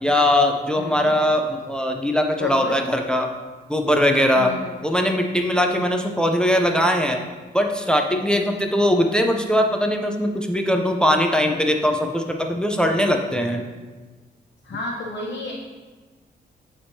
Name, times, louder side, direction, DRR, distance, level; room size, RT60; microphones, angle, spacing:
voice 1, 0.0-3.3 3.7-4.5 4.8-7.2 7.5-13.6, left 1 dB, 5° left, 3 dB, 0.5 m, -20 dB
voice 2, 0.8-1.1 2.3-2.8 4.4-4.8 5.5-5.8 8.3-8.6 14.6-15.5, left 3 dB, 75° left, -3 dB, 0.8 m, -32 dB
9.8 x 3.5 x 2.7 m, 1.3 s
cardioid pair, 85°, 18 cm